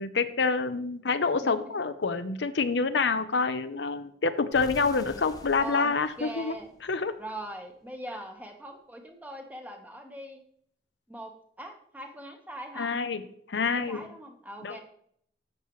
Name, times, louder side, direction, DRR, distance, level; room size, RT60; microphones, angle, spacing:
voice 1, 0.0-6.6 6.8-7.1 12.8-13.2 13.5-14.0 14.6-14.8, left 4 dB, 80° left, 10 dB, 0.7 m, -27 dB
sound 1, 4.5-7.4, left 1 dB, 20° left, 0.9 m, -47 dB
voice 2, 5.6-6.7 7.2-10.4 11.1-12.9 13.6-14.8, right 1 dB, 10° right, 3 dB, 1.2 m, -41 dB
11.5 x 7.3 x 3.1 m, 0.65 s
head